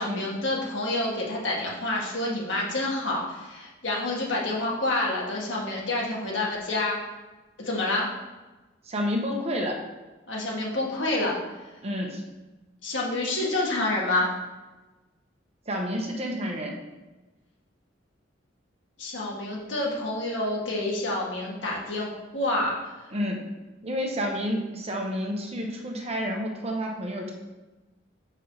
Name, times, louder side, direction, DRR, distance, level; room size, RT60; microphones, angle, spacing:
voice 1, 0.0-7.0 7.6-8.1 10.3-11.3 12.8-14.3 19.0-22.1 22.3-23.1, left 2 dB, 75° left, -3 dB, 1.8 m, -28 dB
voice 2, 8.9-9.8 11.8-12.2 15.7-16.8 23.1-23.4 23.8-27.3, equal, 35° right, 1 dB, 1.0 m, -29 dB
6.3 x 5.5 x 4.0 m, 1.1 s
head